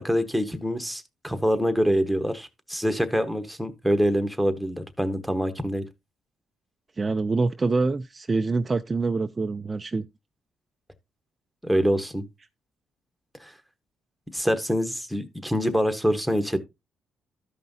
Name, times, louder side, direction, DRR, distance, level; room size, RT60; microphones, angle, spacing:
voice 1, 0.0-5.8 11.6-12.2 13.4-13.5 14.3-16.6, equal, ahead, 1.1 m, -25 dB
voice 2, 7.0-10.1, right 3 dB, 25° right, 0.4 m, -25 dB
13.0 x 5.4 x 2.7 m
cardioid pair, 90°, 0 cm